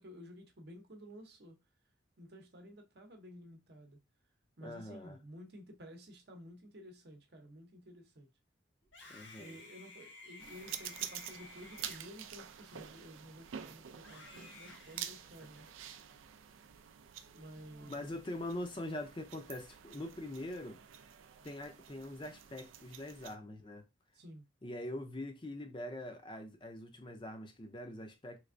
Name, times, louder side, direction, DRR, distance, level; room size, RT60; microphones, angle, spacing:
voice 1, 0.0-1.6 2.2-4.0 4.6-8.3 9.4-15.7 17.3-18.3 24.1-24.4, equal, 55° right, 0.8 m, -53 dB
voice 2, 4.6-5.2 9.1-9.6 17.8-20.8 21.4-23.8 24.6-28.4, left 1 dB, 25° left, 0.5 m, -43 dB
Screaming, 8.8-13.3 14.0-15.7, left 3 dB, 75° left, 1.2 m, -55 dB
sound 1, 10.4-23.4, right 9 dB, 85° right, 0.4 m, -48 dB
3.4 x 3.2 x 2.5 m
head